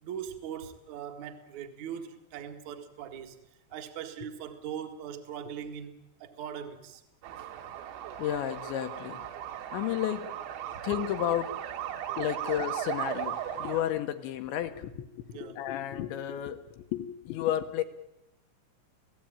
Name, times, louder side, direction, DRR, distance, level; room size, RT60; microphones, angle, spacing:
voice 1, 0.0-3.4 3.7-7.0 15.3-15.7, right 8 dB, 50° right, 6 dB, 2.4 m, -40 dB
sound 1, 7.2-13.8, right 10 dB, 70° right, 3.5 m, -37 dB
voice 2, 8.2-9.3 9.7-10.3 10.8-11.5 12.2-17.8, left 11 dB, 75° left, 8 dB, 3.1 m, -32 dB
29.5 x 17.0 x 9.1 m, 0.89 s
omnidirectional pair, 5.8 m